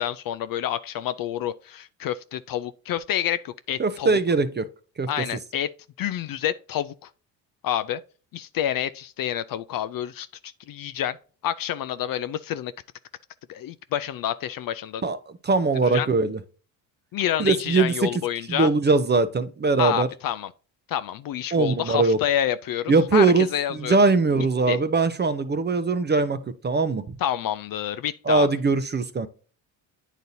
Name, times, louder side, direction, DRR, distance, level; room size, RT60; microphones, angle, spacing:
voice 1, 0.0-4.1 5.1-5.7 6.0-7.1 7.6-8.0 8.3-11.2 11.4-12.7 13.5-15.0 15.8-16.1 17.1-18.7 19.8-20.5 20.9-23.3 23.5-24.0 24.3-24.8 27.2-28.5, left 11 dB, 45° left, 0.4 m, -28 dB
voice 2, 3.8-4.7 5.0-5.1 15.0-15.2 15.4-16.4 17.4-18.1 18.5-20.1 21.5-22.2 22.9-27.2 28.3-29.3, right 3 dB, 20° right, 0.6 m, -21 dB
9.1 x 4.1 x 2.7 m
hypercardioid pair, 65°, 50 cm